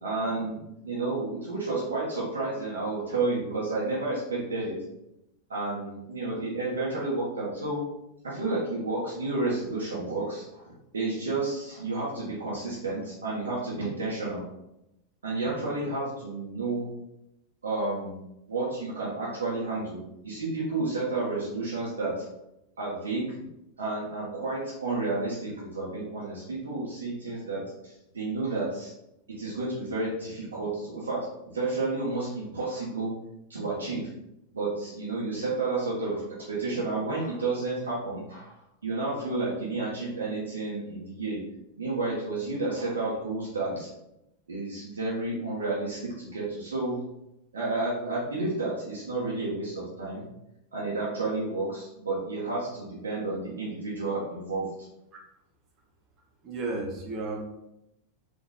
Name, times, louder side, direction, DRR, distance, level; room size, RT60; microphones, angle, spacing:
voice 1, 0.0-4.8 5.5-7.8 8.2-14.4 15.2-16.9 17.6-18.2 18.5-22.3 22.8-23.4 23.8-28.9 29.4-33.1 33.5-34.1 34.5-41.4 41.8-43.9 44.5-47.0 47.5-50.2 50.7-54.7, right 3 dB, 70° right, -7 dB, 1.1 m, -31 dB
voice 2, 56.4-57.4, right 2 dB, 35° right, 1 dB, 1.0 m, -33 dB
3.9 x 2.9 x 3.9 m, 0.85 s
figure-of-eight pair, 90°, 0 cm